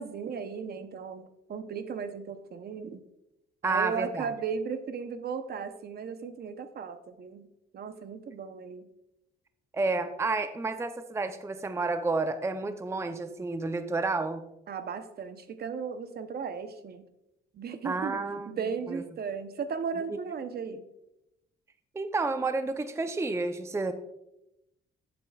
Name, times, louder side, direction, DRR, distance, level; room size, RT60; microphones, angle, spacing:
voice 1, 0.0-3.0 3.6-7.5 7.7-8.9 14.7-17.0 17.5-20.8, right 6 dB, 50° right, 10 dB, 0.8 m, -36 dB
voice 2, 3.6-4.3 9.7-14.4 17.8-18.6 18.9-19.0 21.9-23.9, right 3 dB, 15° right, 9 dB, 0.5 m, -30 dB
10.5 x 7.8 x 2.3 m, 0.86 s
cardioid pair, 90°, 20 cm